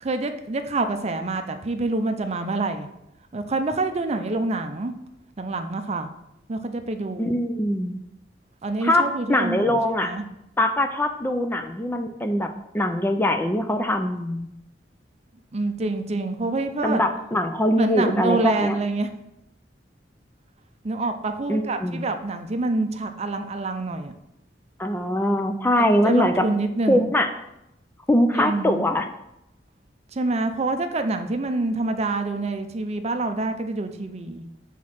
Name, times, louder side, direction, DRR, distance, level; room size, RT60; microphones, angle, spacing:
voice 1, 0.0-2.9 3.3-4.9 5.4-6.1 6.5-7.4 8.6-10.2 15.5-17.0 17.7-19.1 20.8-24.1 26.0-27.0 28.3-28.8 30.1-34.5, right 2 dB, 35° right, 7 dB, 0.5 m, -26 dB
voice 2, 7.2-8.0 8.8-10.1 10.6-14.5 16.8-18.8 21.5-22.0 24.8-26.4 26.9-27.3 28.1-29.1, left 1 dB, 10° left, 6 dB, 0.4 m, -22 dB
6.2 x 3.7 x 5.8 m, 0.85 s
head